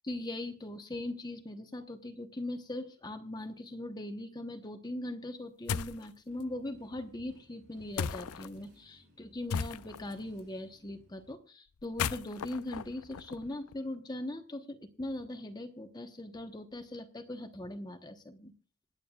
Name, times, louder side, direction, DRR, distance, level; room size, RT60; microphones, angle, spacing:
voice 1, 0.0-18.5, left 1 dB, 20° left, 6 dB, 1.0 m, -40 dB
sound 1, 5.7-6.1 8.0-8.5 9.5-10.1 11.8-13.8, left 6 dB, 85° left, 0.5 m, -36 dB
Motorcycle, 6.3-11.4, equal, 55° right, 7.0 m, -62 dB
27.0 x 9.1 x 2.4 m, 0.35 s
head